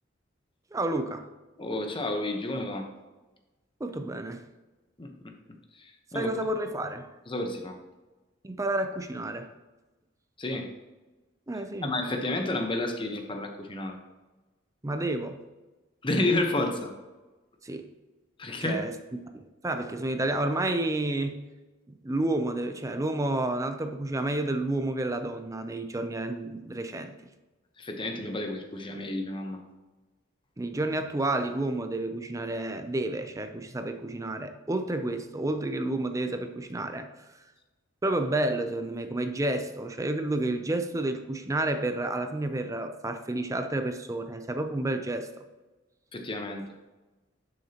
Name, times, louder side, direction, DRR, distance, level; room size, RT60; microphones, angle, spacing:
voice 1, 0.7-1.3 3.8-4.4 6.1-7.1 8.4-9.5 11.5-11.9 14.8-15.4 17.6-17.9 18.6-18.9 19.3-21.4 21.9-27.1 30.6-37.1 38.0-45.4, right 2 dB, 15° right, 7 dB, 0.5 m, -30 dB
voice 2, 1.6-2.9 5.0-5.3 5.8-6.3 7.3-7.8 10.4-10.7 11.8-14.0 16.0-16.9 18.4-18.8 27.8-29.6 46.1-46.6, left 2 dB, 25° left, 4 dB, 1.0 m, -30 dB
11.0 x 6.5 x 2.9 m, 1.2 s
head